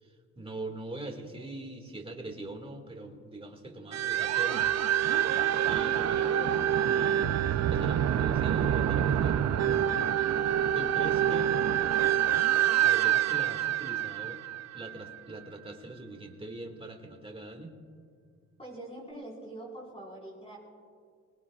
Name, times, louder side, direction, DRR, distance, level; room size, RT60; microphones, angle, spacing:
voice 1, 0.0-4.7 5.6-9.8 10.7-11.5 12.8-14.4 14.7-17.7, right 2 dB, 20° right, 3 dB, 2.1 m, -42 dB
sound 1, 3.9-15.1, right 10 dB, 60° right, 0.7 m, -26 dB
voice 2, 18.6-20.6, right 1 dB, 20° left, -4 dB, 4.9 m, -44 dB
25.5 x 20.0 x 2.5 m, 2.2 s
cardioid pair, 90°, 30 cm